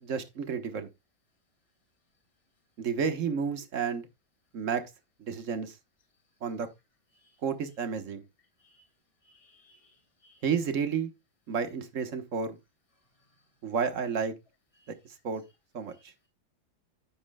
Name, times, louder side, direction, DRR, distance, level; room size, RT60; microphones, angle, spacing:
voice 1, 0.0-0.9 2.8-4.1 4.5-4.8 5.2-5.7 6.4-6.7 7.4-8.2 10.4-11.1 11.5-12.6 13.6-14.3 15.2-15.4 15.7-15.9, right 6 dB, 45° right, 1.4 m, -31 dB
voice 2, 9.2-10.4 14.8-14.9, left 1 dB, 15° left, 2.9 m, -64 dB
9.8 x 9.5 x 2.2 m
omnidirectional pair, 2.1 m